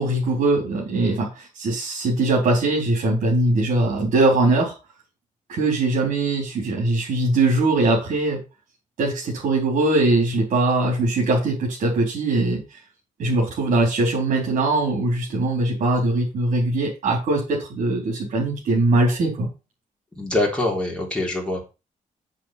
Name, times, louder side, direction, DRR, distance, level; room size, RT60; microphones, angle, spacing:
voice 1, 0.0-4.7 5.5-8.4 9.0-12.8 13.2-19.5, right 2 dB, 65° right, -3 dB, 4.2 m, -21 dB
voice 2, 20.2-21.6, left 2 dB, 5° left, -2 dB, 3.7 m, -24 dB
7.8 x 7.5 x 5.9 m, 0.29 s
wide cardioid pair, 180°, 14 cm